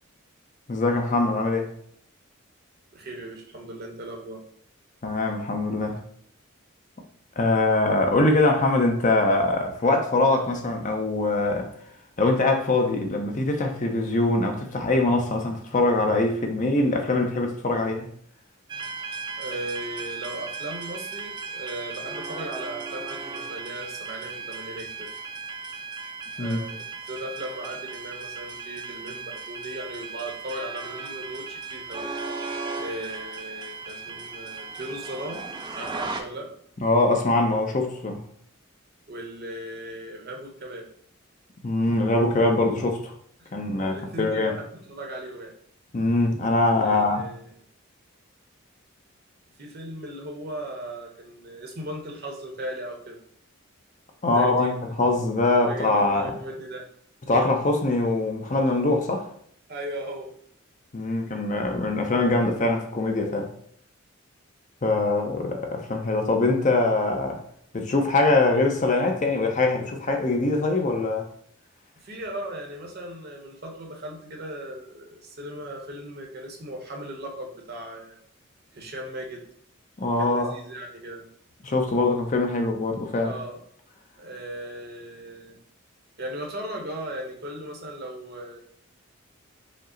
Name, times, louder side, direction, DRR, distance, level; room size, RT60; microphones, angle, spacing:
voice 1, 0.7-1.7 5.0-6.0 7.4-11.7 12.2-18.1 26.4-26.6 36.8-38.2 41.6-43.1 43.5-44.5 45.9-47.2 54.2-56.4 57.3-59.3 60.9-63.5 64.8-67.4 67.7-71.3 80.0-80.5 81.6-83.4, left 2 dB, 35° left, 0.5 m, -23 dB
voice 2, 2.9-4.4 19.4-25.1 26.4-32.1 32.8-36.5 39.1-40.9 43.4-43.5 43.9-45.5 46.7-47.5 49.6-53.2 54.3-54.7 55.6-56.9 59.7-60.4 72.0-78.2 78.7-79.5 80.2-81.3 83.2-83.6 84.2-85.6 86.2-88.6, right 1 dB, 50° right, 0.9 m, -37 dB
sound 1, 18.7-36.2, right 4 dB, 20° right, 0.3 m, -36 dB
5.2 x 2.0 x 3.8 m
head